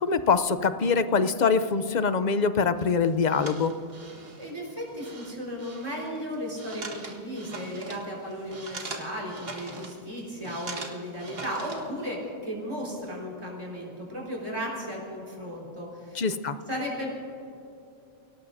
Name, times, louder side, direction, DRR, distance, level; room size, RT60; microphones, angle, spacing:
voice 1, 0.0-3.7 16.1-16.5, left 5 dB, 50° left, 11 dB, 0.7 m, -24 dB
sound 1, 2.8-12.1, right 3 dB, 70° right, 1.8 m, -42 dB
voice 2, 4.4-16.2 16.7-17.1, equal, 30° right, -3 dB, 4.4 m, -35 dB
29.0 x 18.0 x 2.7 m, 2.7 s
omnidirectional pair, 1.0 m